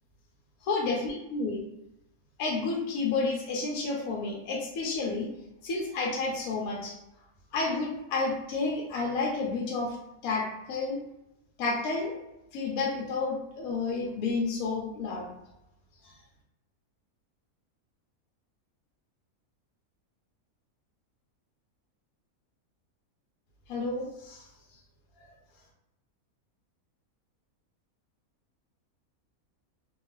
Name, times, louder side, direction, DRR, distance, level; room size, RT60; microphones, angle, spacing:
voice 1, 0.6-1.6 2.4-5.3 5.6-6.9 7.5-10.0 10.2-11.0 11.6-12.2 12.5-15.3 16.0-16.1 23.7-24.5, left 3 dB, 75° left, -1 dB, 1.0 m, -30 dB
2.8 x 2.3 x 3.0 m, 0.90 s
omnidirectional pair, 1.6 m